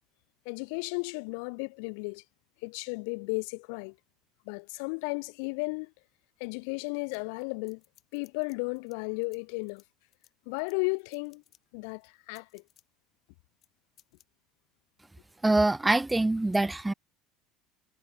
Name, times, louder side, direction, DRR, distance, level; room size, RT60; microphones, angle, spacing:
voice 1, 0.4-2.2 2.6-4.0 4.5-5.9 6.4-7.8 8.1-9.8 10.5-11.4 11.7-12.6, left 35 dB, 75° left, 0.7 m, -34 dB
sound 1, 7.1-9.0 9.2-11.6 12.0-12.9 13.6-13.7 14.0-14.2, left 12 dB, 50° left, 6.1 m, -63 dB
voice 2, 15.4-16.9, right 2 dB, 10° right, 0.3 m, -24 dB
supercardioid pair, 90°, 0 cm